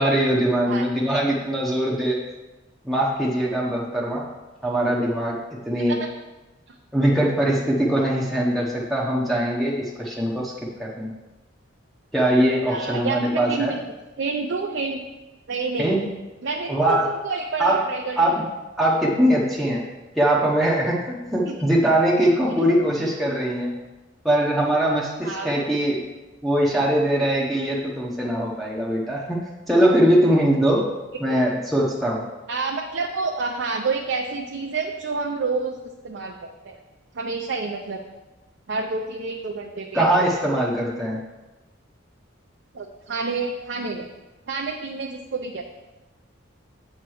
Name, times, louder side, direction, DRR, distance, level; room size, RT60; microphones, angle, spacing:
voice 1, 0.0-2.2 2.8-4.3 4.6-5.4 5.6-6.0 6.9-10.5 10.8-11.1 12.1-13.8 15.8-16.0 16.7-17.1 17.6-17.8 18.2-18.4 18.8-19.9 20.2-23.7 24.2-26.1 26.4-29.4 29.7-30.9 31.2-32.2 39.9-41.2, right 1 dB, ahead, -4 dB, 0.8 m, -21 dB
voice 2, 12.7-13.8 14.2-15.0 15.5-15.9 16.4-18.4 21.5-21.6 22.5-22.7 25.2-25.7 32.5-35.8 36.0-36.4 36.6-36.8 37.1-38.0 38.7-40.4 42.7-44.1 44.5-45.6, right 4 dB, 65° right, 1 dB, 0.5 m, -28 dB
8.0 x 3.1 x 6.2 m, 1.1 s
head